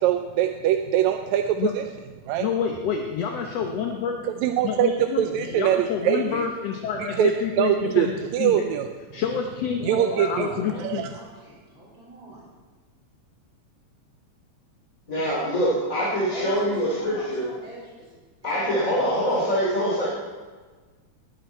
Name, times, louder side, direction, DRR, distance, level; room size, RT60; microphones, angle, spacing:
voice 1, 0.0-1.8 2.3-2.5 4.4-4.9 5.2-6.5 7.0-7.3 7.6-8.1 8.3-8.9 9.8-10.5 10.8-11.1, right 11 dB, 80° right, 6 dB, 1.9 m, -23 dB
voice 2, 2.4-4.3 4.6-8.7 9.1-11.1, left 7 dB, 65° left, 3 dB, 1.9 m, -28 dB
voice 3, 9.9-12.5 15.1-15.4 15.9-18.1 18.4-19.2, right 1 dB, 45° right, -5 dB, 5.2 m, -42 dB
voice 4, 15.1-17.5 18.4-20.1, equal, 25° left, -7 dB, 3.2 m, -24 dB
18.5 x 10.5 x 4.6 m, 1.4 s
omnidirectional pair, 3.4 m